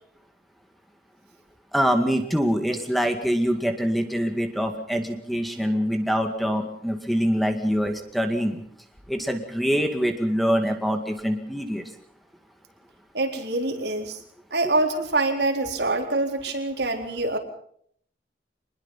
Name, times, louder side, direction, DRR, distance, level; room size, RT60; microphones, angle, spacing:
voice 1, 1.7-8.6 9.1-11.8, equal, ahead, 6 dB, 2.1 m, -24 dB
voice 2, 13.1-14.2 14.5-17.4, right 2 dB, 70° right, 4 dB, 4.2 m, -25 dB
26.0 x 20.5 x 5.7 m, 0.63 s
head